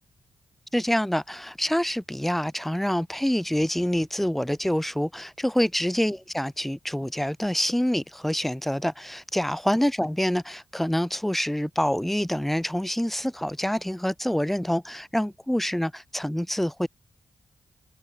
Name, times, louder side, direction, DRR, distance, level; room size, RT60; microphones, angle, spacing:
voice 1, 0.7-16.9, equal, 5° left, 0.4 m, -26 dB
wide cardioid pair, 125°, 6 cm